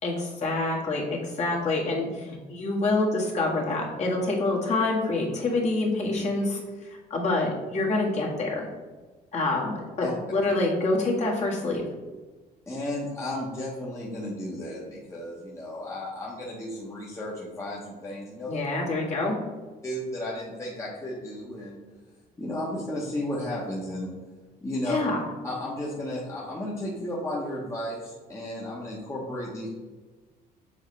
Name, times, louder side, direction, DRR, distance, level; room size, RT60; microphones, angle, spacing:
voice 1, 0.0-8.7 9.3-11.8 18.5-19.4 24.9-25.3, left 2 dB, 40° left, -2 dB, 1.7 m, -27 dB
voice 2, 12.7-18.6 19.8-21.8 22.4-24.1 24.6-25.0 25.4-29.7, left 1 dB, 15° left, -5 dB, 1.1 m, -33 dB
7.2 x 4.0 x 3.2 m, 1.3 s
cardioid pair, 110°, 17 cm